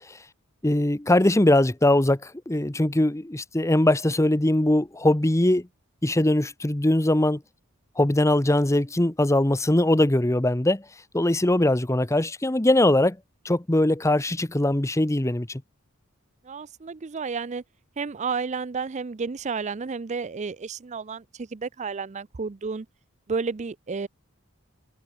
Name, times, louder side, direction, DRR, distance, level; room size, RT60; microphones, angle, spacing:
voice 1, 0.6-5.7 6.0-7.4 8.0-10.8 11.1-13.2 13.4-15.6, left 1 dB, 15° left, 0.9 m, -21 dB
voice 2, 16.5-17.6 18.0-22.9 23.3-24.1, right 5 dB, 35° right, 0.5 m, -31 dB
head